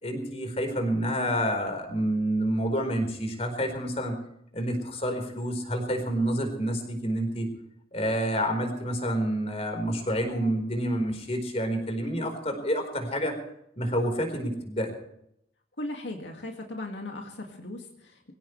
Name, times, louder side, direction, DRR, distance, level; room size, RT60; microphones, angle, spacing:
voice 1, 0.0-4.2 4.5-7.5 7.9-13.4 13.8-14.9, equal, 35° left, 5 dB, 4.4 m, -28 dB
voice 2, 15.8-18.3, left 1 dB, 75° left, 2 dB, 2.1 m, -38 dB
23.5 x 16.5 x 3.3 m, 0.75 s
head